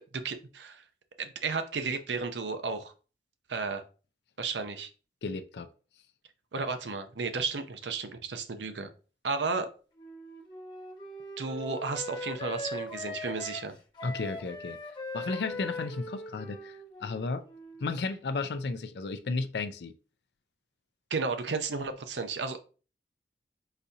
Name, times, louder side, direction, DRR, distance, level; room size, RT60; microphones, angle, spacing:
voice 1, 0.1-0.8 1.2-2.9 3.5-3.8 4.4-4.9 6.5-8.9 9.2-9.7 11.4-13.8 21.1-22.6, right 4 dB, 90° right, 0.6 m, -33 dB
voice 2, 5.2-5.7 14.0-14.8 15.1-17.4 17.8-19.9, left 3 dB, 75° left, 0.4 m, -33 dB
Wind instrument woodwind instrument, 10.0-18.0, left 2 dB, 25° left, 0.9 m, -40 dB
4.0 x 2.7 x 4.7 m
head